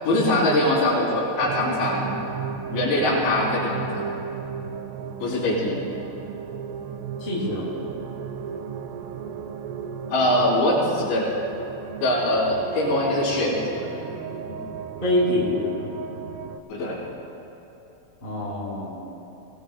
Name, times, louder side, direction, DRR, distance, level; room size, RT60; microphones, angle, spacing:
voice 1, 0.1-2.2 2.7-4.1 5.2-5.8 9.1-9.3 10.1-11.3 12.0-13.8 14.5-14.6 16.7-17.0, left 1 dB, 65° left, -7 dB, 5.9 m, -22 dB
sound 1, 1.4-16.6, right 7 dB, 85° right, 3.1 m, -35 dB
voice 2, 7.2-7.7 15.0-15.7 18.2-19.0, left 1 dB, 10° left, -7 dB, 3.5 m, -25 dB
24.0 x 17.5 x 2.2 m, 2.9 s
omnidirectional pair, 5.8 m